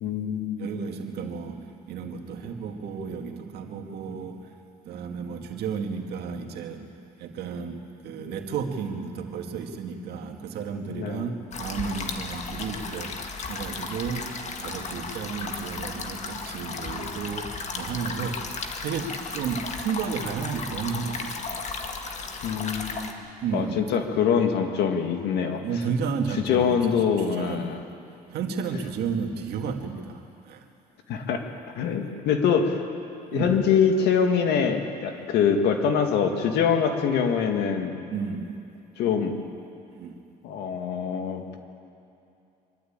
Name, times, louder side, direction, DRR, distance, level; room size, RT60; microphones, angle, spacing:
voice 1, 0.0-0.7 10.9-11.3 22.4-23.1 23.5-25.6 26.5-27.8 31.1-31.4 31.8-32.8 33.3-38.0 39.0-39.4 40.4-41.4, left 7 dB, 80° left, 5 dB, 2.0 m, -24 dB
voice 2, 0.6-4.6 4.8-6.9 7.2-18.5 18.8-21.7 23.4-23.8 25.6-27.8 28.3-30.6 33.3-33.6 38.1-38.6 40.0-40.2, right 6 dB, 75° right, 4 dB, 2.0 m, -32 dB
sound 1, 11.5-23.1, left 4 dB, 40° left, 1.7 m, -35 dB
24.0 x 12.5 x 8.8 m, 2.7 s
cardioid pair, 110°, 17 cm